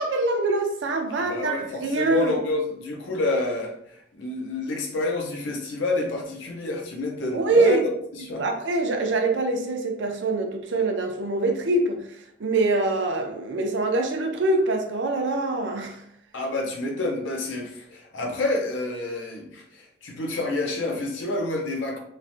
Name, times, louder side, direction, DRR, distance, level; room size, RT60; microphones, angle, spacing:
voice 1, 0.0-1.5 1.8-2.3 7.3-7.8 8.4-12.0 12.4-16.0, right 3 dB, 80° right, 0.5 m, -24 dB
voice 2, 1.2-3.7 4.1-8.4 16.3-22.0, left 2 dB, 85° left, 0.5 m, -28 dB
3.1 x 2.1 x 2.6 m
head